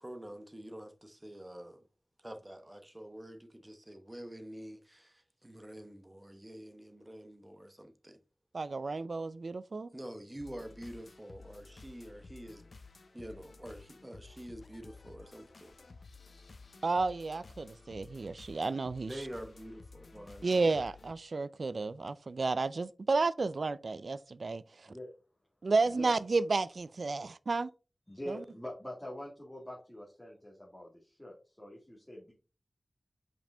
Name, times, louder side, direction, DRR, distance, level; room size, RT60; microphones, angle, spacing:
voice 1, 0.0-1.9 2.2-8.2 9.9-12.6 13.1-15.8 19.1-20.7, right 1 dB, 20° right, 0.9 m, -47 dB
voice 2, 8.5-9.9 16.8-19.2 20.4-24.9 25.6-27.7 28.3-28.4, right 3 dB, 75° right, 0.3 m, -32 dB
sound 1, 10.4-21.1, left 3 dB, 80° left, 0.6 m, -54 dB
voice 3, 28.1-32.3, left 1 dB, 10° left, 2.1 m, -45 dB
5.4 x 5.0 x 3.7 m
wide cardioid pair, 85°, 0 cm